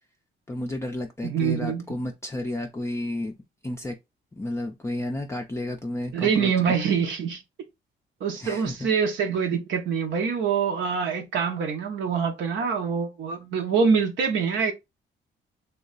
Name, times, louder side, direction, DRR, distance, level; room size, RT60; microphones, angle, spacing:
voice 1, 0.5-3.3 3.6-4.0 4.3-6.8 8.4-8.9, left 1 dB, 15° left, 0.4 m, -32 dB
voice 2, 1.3-1.8 6.1-7.4 8.2-14.7, right 6 dB, 70° right, 0.6 m, -25 dB
2.8 x 2.2 x 3.8 m
cardioid pair, 90°, 20 cm